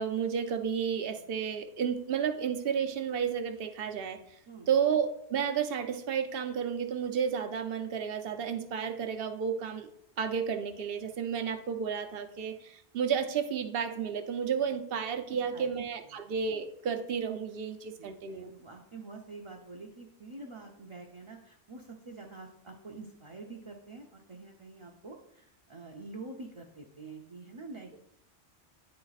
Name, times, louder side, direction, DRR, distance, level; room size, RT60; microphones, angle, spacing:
voice 1, 0.0-4.2 4.7-9.9 10.2-18.5, right 7 dB, 60° right, 8 dB, 0.8 m, -32 dB
voice 2, 15.3-15.7 16.1-16.2 18.0-28.0, right 3 dB, 35° right, -1 dB, 0.6 m, -47 dB
9.6 x 3.4 x 4.0 m, 0.72 s
omnidirectional pair, 1.1 m